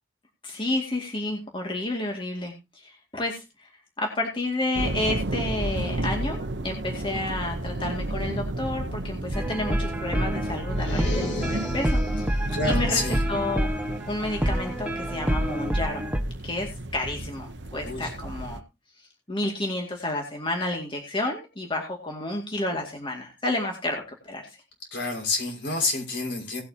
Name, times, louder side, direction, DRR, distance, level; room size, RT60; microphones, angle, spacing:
voice 1, 0.4-3.7 4.0-13.0 13.3-13.7 14.1-16.0 16.4-18.6 19.3-24.4, left 2 dB, 30° left, 1 dB, 2.3 m, -31 dB
sound 1, 4.7-18.6, right 1 dB, 70° right, 0.9 m, -32 dB
sound 2, 9.3-16.2, equal, 5° right, 1.4 m, -28 dB
sound 3, 10.7-12.3, left 2 dB, 90° left, 3.1 m, -35 dB
voice 2, 12.5-13.2 17.8-18.1 24.9-26.6, left 3 dB, 70° left, 1 dB, 5.8 m, -28 dB
18.5 x 8.5 x 2.9 m, 0.26 s
head